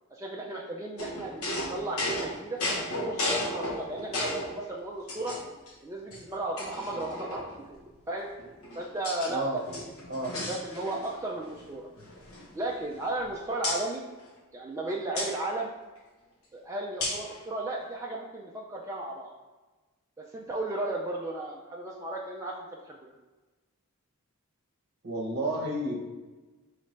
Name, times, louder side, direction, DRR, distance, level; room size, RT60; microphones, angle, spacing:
voice 1, 0.1-2.6 3.0-5.4 5.8-8.3 8.7-9.9 10.5-11.9 12.5-14.0 14.5-15.7 16.5-19.3 20.2-23.1, right 2 dB, 15° right, -3 dB, 0.4 m, -35 dB
sound 1, 1.0-4.6 5.1-5.7 6.1-6.2 6.6-7.6 8.4-9.3 9.6-11.2 11.4-11.7 12.0-13.3 13.6-13.8 15.2-15.3 17.0-17.3, left 1 dB, 70° left, 0.9 m, -34 dB
voice 2, 9.3-9.6 10.1-10.3 25.0-26.0, right 1 dB, 50° right, 1 dB, 0.8 m, -31 dB
5.2 x 3.2 x 3.1 m, 1.2 s
head